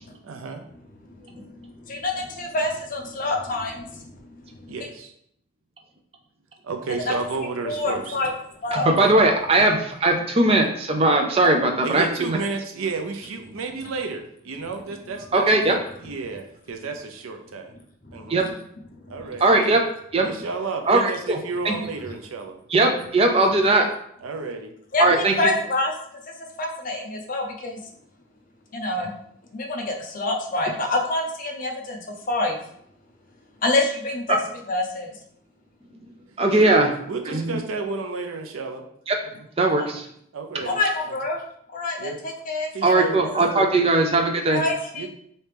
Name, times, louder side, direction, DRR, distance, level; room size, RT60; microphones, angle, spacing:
voice 1, 0.2-0.6 4.7-5.1 6.6-8.2 11.8-15.5 16.0-17.7 18.1-18.4 19.1-19.5 20.2-22.6 23.4-23.6 24.2-24.7 36.5-36.8 37.1-38.8 40.3-40.8 41.1-41.2 42.0-42.2 42.7-43.3 43.7-43.9 44.9-45.1, right 4 dB, 90° right, 5 dB, 0.5 m, -32 dB
voice 2, 1.1-4.9 7.1-7.2 7.6-8.3 8.6-8.9 18.0-18.3 19.0-19.2 24.9-25.9 26.6-27.8 28.7-29.1 29.5-32.0 32.3-32.6 33.6-34.4 34.7-35.2 39.6-39.9 40.6-41.4 41.7-43.5 44.5-45.1, left 2 dB, 40° left, 2 dB, 0.5 m, -27 dB
voice 3, 8.7-12.4 15.3-15.8 18.3-18.5 19.4-19.8 20.1-20.3 20.9-21.4 21.6-21.7 22.7-23.9 25.0-25.3 34.3-34.4 36.4-36.9 37.3-37.6 39.1-39.2 39.6-40.0 42.8-44.6, right 2 dB, 30° right, 3 dB, 0.4 m, -19 dB
3.2 x 2.8 x 3.3 m, 0.69 s
head